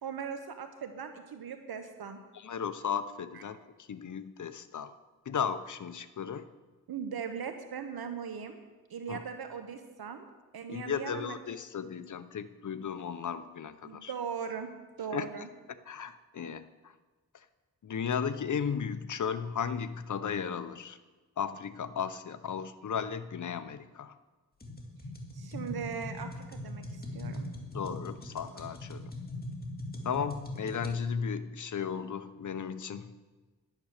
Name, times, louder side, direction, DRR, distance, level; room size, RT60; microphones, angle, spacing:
voice 1, 0.0-2.2 6.9-8.6 8.9-10.2 10.5-11.3 13.8-14.7 15.0-15.5 25.3-27.5, right 7 dB, 75° right, 7 dB, 1.1 m, -39 dB
voice 2, 2.3-3.6 3.9-4.9 5.2-6.5 9.1-9.2 10.7-14.1 15.1-15.3 15.7-16.9 17.3-17.4 17.8-21.0 21.4-24.2 27.7-29.1 30.0-33.1, left 7 dB, 50° left, 12 dB, 0.8 m, -35 dB
sound 1, 24.6-30.9, left 1 dB, 25° left, 2.3 m, -41 dB
11.5 x 9.3 x 6.6 m, 1.3 s
cardioid pair, 75°, 38 cm